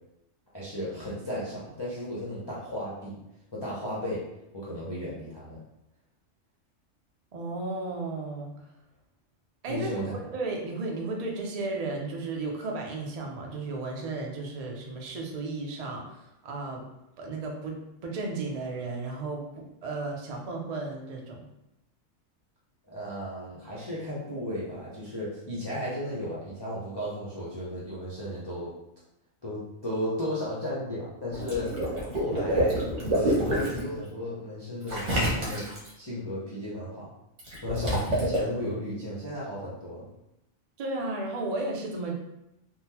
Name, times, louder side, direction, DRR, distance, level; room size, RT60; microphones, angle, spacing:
voice 1, 0.5-3.2 3.5-4.2 4.5-5.6 9.7-10.1 22.9-28.7 29.4-31.7 32.2-35.7 36.0-37.1 37.6-40.1, left 1 dB, 30° left, -9 dB, 0.5 m, -34 dB
voice 2, 7.3-8.5 9.6-9.9 10.3-16.8 17.2-19.4 19.8-21.4 40.8-42.1, right 3 dB, 50° right, 0 dB, 0.4 m, -34 dB
Water / Liquid, 31.3-33.8 34.9-35.9 37.4-38.4, right 1 dB, 65° right, 1.3 m, -27 dB
3.6 x 2.2 x 2.8 m, 0.86 s
omnidirectional pair, 1.3 m